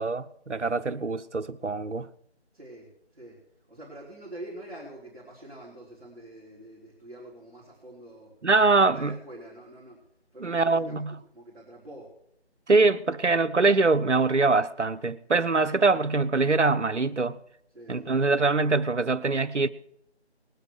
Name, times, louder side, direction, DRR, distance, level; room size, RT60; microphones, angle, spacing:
voice 1, 0.0-2.1 8.4-9.1 10.4-11.1 12.7-17.4 17.9-19.7, right 3 dB, 90° right, 0.9 m, -23 dB
voice 2, 2.5-3.4 3.7-8.3 8.9-10.0 10.3-12.1 17.7-18.2, right 1 dB, 5° right, 1.9 m, -45 dB
20.0 x 8.2 x 6.5 m
figure-of-eight pair, 165°, 34 cm